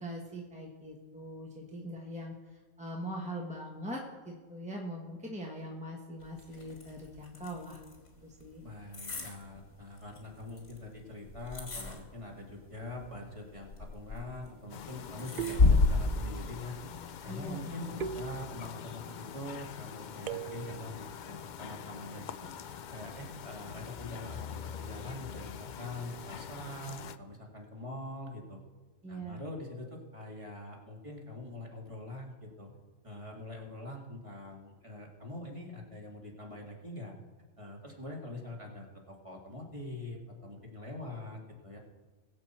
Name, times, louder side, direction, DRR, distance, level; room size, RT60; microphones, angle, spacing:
voice 1, 0.0-7.8 8.2-8.6 17.3-18.1 29.0-29.4, equal, 5° right, -1 dB, 1.4 m, -42 dB
sound 1, 6.2-17.6, left 3 dB, 80° left, 2.2 m, -33 dB
voice 2, 8.6-16.8 17.2-22.5 22.9-28.6 29.1-32.7 33.0-37.1 37.6-41.8, left 2 dB, 25° right, -1 dB, 2.1 m, -44 dB
sound 2, 13.0-13.5 15.4-16.3 18.0-18.9 20.3-21.0, right 9 dB, 55° right, 0.5 m, -41 dB
sound 3, 14.7-27.2, left 8 dB, 60° left, 0.5 m, -45 dB
21.0 x 7.6 x 4.4 m, 1.3 s
omnidirectional pair, 1.3 m